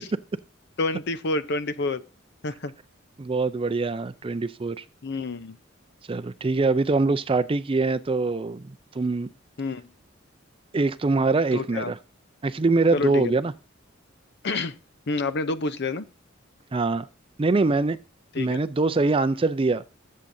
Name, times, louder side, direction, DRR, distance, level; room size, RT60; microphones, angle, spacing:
voice 1, 0.8-2.0 2.4-2.7 5.0-5.6 9.6-9.8 11.5-11.9 12.9-13.3 14.4-14.8 15.1-16.1 18.3-18.6, left 3 dB, 60° left, 0.7 m, -28 dB
voice 2, 3.2-4.8 6.1-9.3 10.7-12.0 12.4-13.5 16.7-17.1 17.4-18.0 18.4-19.8, right 3 dB, 25° right, 0.4 m, -23 dB
21.5 x 7.5 x 2.7 m
head